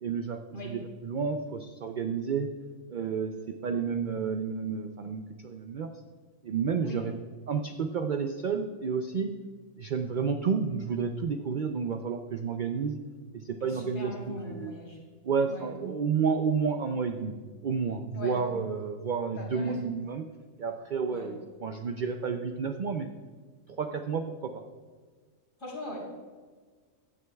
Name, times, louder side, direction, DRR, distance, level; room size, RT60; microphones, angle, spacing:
voice 1, 0.0-2.5 2.9-5.9 6.4-7.1 7.5-9.3 9.8-13.0 13.3-14.7 15.2-17.3 17.6-20.2 20.6-23.1 23.8-24.6, right 5 dB, 75° right, 6 dB, 0.4 m, -31 dB
voice 2, 13.6-15.0 15.5-15.7 18.1-18.3 19.4-19.9 21.1-21.3 25.6-26.0, left 1 dB, 65° left, -4 dB, 3.7 m, -40 dB
15.0 x 9.5 x 2.3 m, 1.5 s
omnidirectional pair, 1.4 m